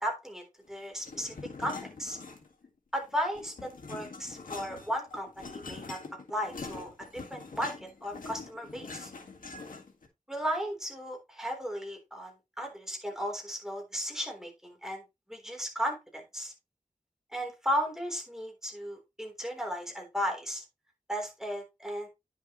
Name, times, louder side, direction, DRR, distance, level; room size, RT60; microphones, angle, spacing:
voice 1, 0.0-2.2 2.9-6.0 6.3-7.7 8.0-9.1 10.3-15.0 15.3-16.5 17.3-20.6 21.1-22.1, equal, 5° right, 1 dB, 3.6 m, -35 dB
sound 1, 1.0-2.7 3.0-10.1, left 4 dB, 90° left, 1.8 m, -44 dB
10.0 x 6.8 x 3.1 m, 0.23 s
wide cardioid pair, 80°, 14 cm